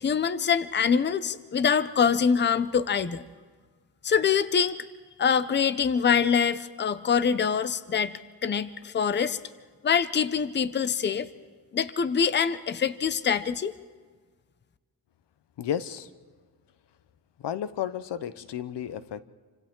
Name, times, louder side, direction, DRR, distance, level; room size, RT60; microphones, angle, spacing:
voice 1, 0.0-3.2 4.0-4.8 5.2-8.1 8.4-9.4 9.8-11.3 11.7-13.7, left 7 dB, 25° left, 0.6 m, -24 dB
voice 2, 15.6-16.1 17.4-19.2, left 9 dB, 90° left, 1.0 m, -32 dB
29.0 x 25.5 x 3.8 m
wide cardioid pair, 160°, 41 cm